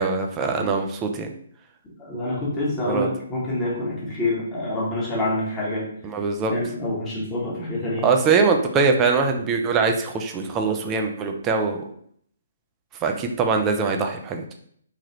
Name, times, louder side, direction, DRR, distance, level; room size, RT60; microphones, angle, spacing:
voice 1, 0.0-1.3 2.9-3.1 6.0-6.5 8.0-11.8 13.0-14.5, right 4 dB, 20° right, 4 dB, 0.4 m, -22 dB
voice 2, 2.0-5.8 6.5-8.1, left 1 dB, 15° left, -6 dB, 1.0 m, -26 dB
3.3 x 2.3 x 2.8 m, 0.65 s
figure-of-eight pair, 135°, 0 cm